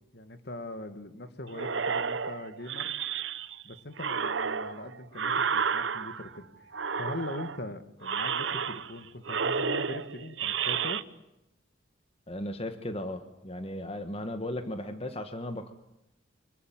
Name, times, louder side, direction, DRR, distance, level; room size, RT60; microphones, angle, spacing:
voice 1, 0.1-2.9 3.6-6.7 6.9-11.0, left 1 dB, 60° left, 9 dB, 2.1 m, -41 dB
sound 1, 1.5-3.6 4.0-6.4 6.7-7.6 8.0-9.0 9.2-11.0, right 6 dB, 80° right, 1.0 m, -31 dB
voice 2, 12.3-15.7, left 1 dB, 30° left, 8 dB, 1.5 m, -36 dB
25.5 x 22.5 x 9.4 m, 0.88 s
head